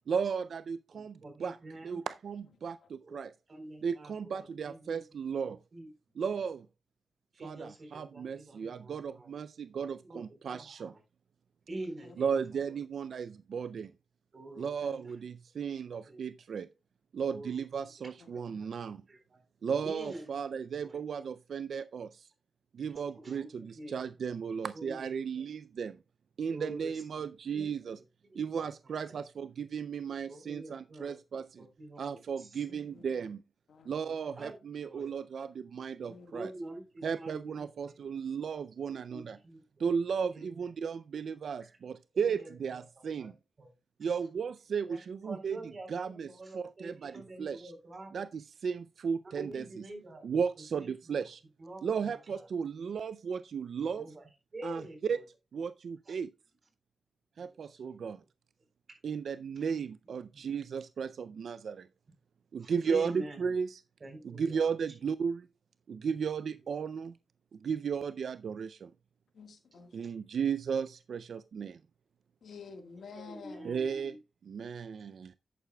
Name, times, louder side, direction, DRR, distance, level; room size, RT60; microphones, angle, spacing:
voice 1, 0.1-1.6 1.8-3.3 3.8-5.6 6.2-6.7 7.4-10.9 12.2-13.9 14.6-16.7 17.1-19.0 19.6-22.3 22.7-26.0 26.4-28.0 28.3-31.7 32.0-33.4 33.9-36.5 37.0-39.4 39.8-43.3 44.0-47.7 48.1-49.9 50.2-51.4 51.8-54.1 54.6-55.2 55.5-56.3 57.4-58.2 59.0-61.9 62.5-63.8 64.2-65.5 65.9-67.2 67.5-68.9 69.9-71.8 73.6-74.2 74.4-75.3, right 6 dB, 85° right, 0.3 m, -35 dB
voice 2, 0.9-2.0 3.0-3.2 3.5-4.1 4.4-5.0 5.7-5.9 7.4-9.3 10.1-10.2 11.7-12.2 14.3-15.0 16.1-16.2 17.3-17.6 18.3-18.4 19.1-20.2 20.8-21.0 23.1-23.5 23.7-24.0 24.7-25.0 25.4-25.5 26.5-26.9 27.5-27.7 28.3-28.5 30.3-31.1 31.6-32.0 32.4-32.5 34.0-34.6 34.8-35.1 36.3-37.9 39.1-39.2 39.4-39.6 40.3-40.5 42.1-42.2 43.2-43.3 43.6-43.7 44.8-45.0 45.2-48.1 49.3-50.2 51.6-51.8 53.9-54.2 54.5-55.0 56.1-56.2 57.4-57.9 60.3-60.5 62.6-63.5 64.0-64.7 69.7-70.1 73.2-74.2, right 1 dB, 50° right, 3.9 m, -45 dB
voice 3, 32.7-33.0 33.7-33.9 36.0-36.3 36.6-36.7 42.3-42.4 44.2-44.3 59.2-59.3 69.3-69.9 72.4-73.8, left 5 dB, 90° left, 1.5 m, -50 dB
10.0 x 9.3 x 2.2 m
cardioid pair, 65°, 0 cm